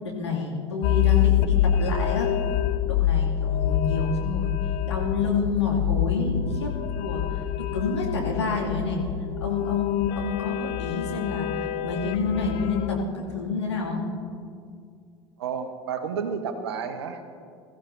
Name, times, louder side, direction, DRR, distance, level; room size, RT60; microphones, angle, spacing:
voice 1, 0.0-2.3 2.9-4.5 4.9-6.7 7.0-9.0 9.4-14.0, left 4 dB, 80° left, -3 dB, 2.5 m, -28 dB
sound 1, 0.8-13.1, left 11 dB, 50° left, 0.5 m, -26 dB
voice 2, 6.3-6.7 15.4-17.4, right 6 dB, 65° right, 8 dB, 1.3 m, -32 dB
21.0 x 14.5 x 2.8 m, 2.3 s
figure-of-eight pair, 75°, 14 cm